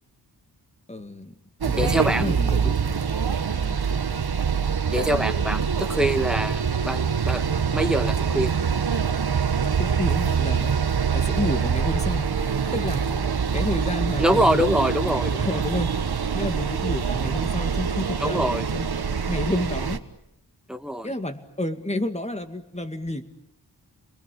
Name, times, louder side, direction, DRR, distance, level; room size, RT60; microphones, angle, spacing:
voice 1, 0.9-1.3 1.6-2.8 9.8-10.7 11.1-12.3 12.7-13.3 13.5-14.6 15.1-16.0 16.3-18.9 19.3-20.0 21.0-23.3, left 1 dB, 15° left, 7 dB, 2.2 m, -30 dB
sound 1, 1.6-20.0, right 6 dB, 60° right, 1.5 m, -25 dB
voice 2, 1.7-2.5 3.5-3.8 4.9-7.4 7.7-8.5 14.2-15.6 18.2-18.7 20.7-21.1, right 1 dB, ahead, 8 dB, 1.5 m, -25 dB
29.5 x 21.5 x 8.6 m, 0.79 s
wide cardioid pair, 95°, 43 cm